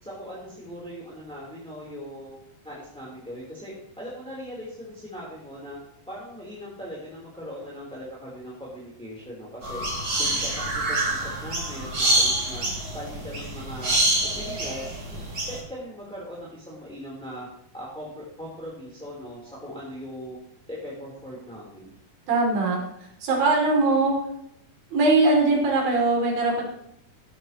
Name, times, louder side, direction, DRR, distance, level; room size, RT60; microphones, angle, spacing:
voice 1, 0.0-2.3 2.6-5.8 6.1-9.9 10.2-12.7 12.9-14.0 14.3-17.5 17.7-20.4 20.7-21.9, equal, ahead, -6 dB, 3.0 m, -39 dB
sound 1, 9.6-15.6, right 1 dB, 30° right, 3.4 m, -26 dB
voice 2, 22.3-22.8 23.2-24.2 24.9-26.7, right 3 dB, 80° right, -1 dB, 4.7 m, -21 dB
14.0 x 12.0 x 3.0 m, 0.77 s
omnidirectional pair, 4.1 m